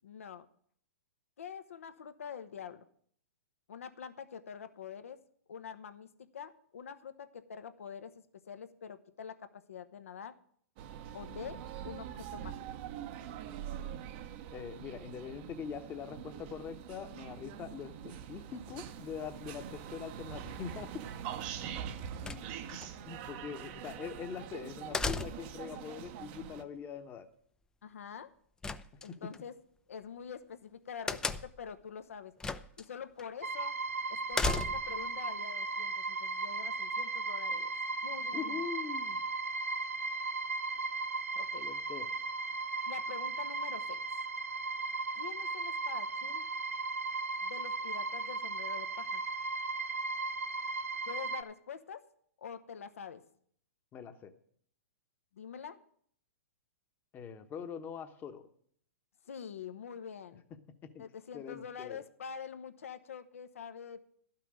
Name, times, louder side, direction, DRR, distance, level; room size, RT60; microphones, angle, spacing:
voice 1, 0.0-0.5 1.4-2.9 3.7-5.2 5.5-6.1 6.3-8.1 8.5-10.3 11.1-12.6 27.8-28.3 29.0-29.5 29.9-32.3 32.8-33.7 34.1-37.7 38.0-38.6 41.3-41.7 42.9-44.0 45.1-46.5 47.4-49.2 51.1-52.1 52.4-53.2 55.3-55.8 59.3-60.4 61.0-64.0, left 7 dB, 70° left, 11 dB, 0.9 m, -45 dB
sound 1, 10.8-26.6, right 9 dB, 45° right, 0.8 m, -44 dB
voice 2, 14.5-21.0 22.2-27.3 28.9-29.3 34.4-34.5 38.3-39.2 41.6-42.1 53.9-54.3 57.1-58.5 60.5-61.0 61.3-62.0, left 7 dB, 25° left, 9 dB, 1.1 m, -43 dB
sound 2, 22.2-22.9 24.9-25.6 28.6-29.4 31.1-31.7 32.4-32.8 33.2-33.3 34.3-35.0, left 3 dB, 10° left, 0.4 m, -34 dB
sound 3, 33.4-51.4, right 3 dB, 90° right, 0.8 m, -36 dB
12.0 x 5.9 x 8.7 m, 0.63 s
hypercardioid pair, 120°, 8 cm